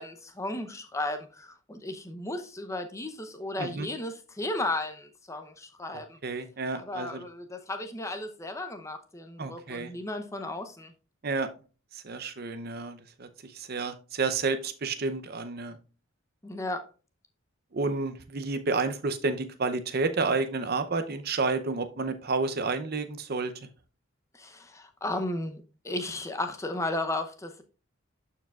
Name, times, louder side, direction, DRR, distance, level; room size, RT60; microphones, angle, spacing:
voice 1, 0.0-6.2 6.7-10.9 16.4-16.8 24.3-27.6, left 2 dB, 15° left, 0.6 m, -34 dB
voice 2, 6.2-7.2 9.4-9.9 11.2-11.5 11.9-15.8 17.7-23.5, right 3 dB, 45° right, 0.6 m, -30 dB
12.0 x 4.7 x 2.4 m
head